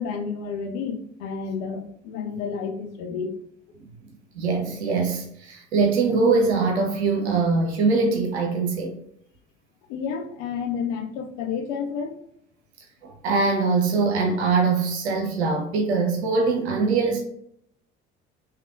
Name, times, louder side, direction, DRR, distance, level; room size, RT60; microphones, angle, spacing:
voice 1, 0.0-3.4 9.9-12.1, left 6 dB, 60° left, 5 dB, 0.6 m, -30 dB
voice 2, 4.4-8.9 13.0-17.2, right 4 dB, 75° right, 3 dB, 0.6 m, -22 dB
3.2 x 2.8 x 2.5 m, 0.68 s
figure-of-eight pair, 55°, 33 cm